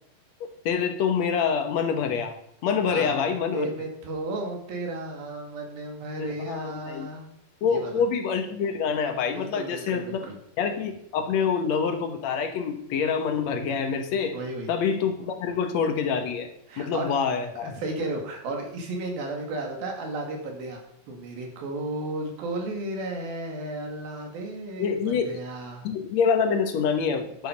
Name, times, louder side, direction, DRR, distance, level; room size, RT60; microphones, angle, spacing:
voice 1, 0.4-2.3 2.6-3.7 6.2-7.1 7.6-10.2 10.6-14.4 14.7-16.5 16.8-17.7 24.8-25.3 25.8-27.5, left 6 dB, 60° left, 6 dB, 2.1 m, -26 dB
voice 2, 3.5-7.3 7.7-8.0 9.3-10.4 14.3-14.7 16.7-17.1 17.6-20.8 21.1-25.8, right 2 dB, 85° right, 2 dB, 4.3 m, -34 dB
10.5 x 9.8 x 5.2 m, 0.72 s
omnidirectional pair, 4.1 m